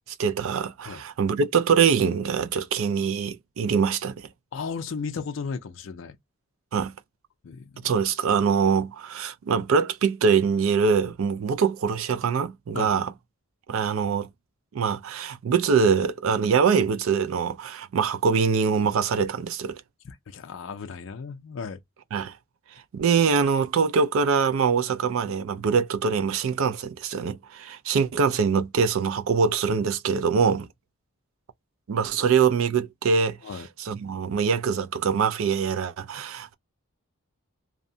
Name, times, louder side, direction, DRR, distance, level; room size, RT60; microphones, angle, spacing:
voice 1, 0.2-4.2 6.7-6.9 7.8-13.1 13.7-14.3 14.7-19.8 22.1-22.3 22.9-30.7 31.9-36.5, right 6 dB, 70° right, 0.3 m, -23 dB
voice 2, 4.5-6.2 7.4-7.7 12.7-13.0 20.0-21.8 32.2-32.3 33.4-33.7, left 5 dB, 60° left, 0.4 m, -35 dB
2.7 x 2.1 x 2.6 m
head